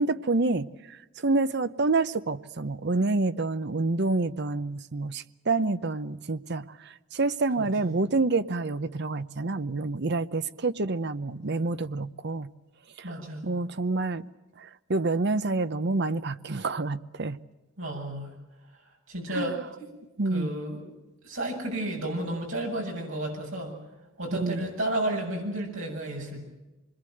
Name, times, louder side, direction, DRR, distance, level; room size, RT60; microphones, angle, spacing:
voice 1, 0.0-12.5 13.0-13.2 13.4-14.3 14.6-17.4 19.3-19.6 20.2-20.5 24.4-24.6, right 3 dB, 55° right, 0.8 m, -28 dB
voice 2, 7.6-8.0 13.0-13.4 17.8-18.3 19.1-19.9 20.3-20.9 21.2-23.7 24.2-26.4, right 1 dB, 70° right, 7.6 m, -32 dB
26.5 x 21.5 x 7.9 m
head